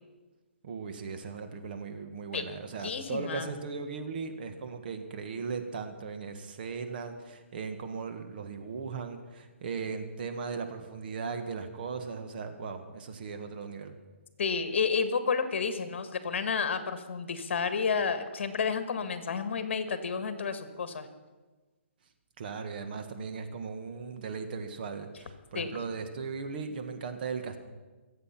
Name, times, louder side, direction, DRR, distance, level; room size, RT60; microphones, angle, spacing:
voice 1, 0.6-13.9 22.4-27.6, right 5 dB, 45° right, 7 dB, 1.6 m, -38 dB
voice 2, 2.8-3.5 14.4-21.1 25.5-25.8, left 5 dB, 60° left, 10 dB, 1.7 m, -31 dB
23.0 x 8.1 x 5.9 m, 1.2 s
hypercardioid pair, 160°, 7 cm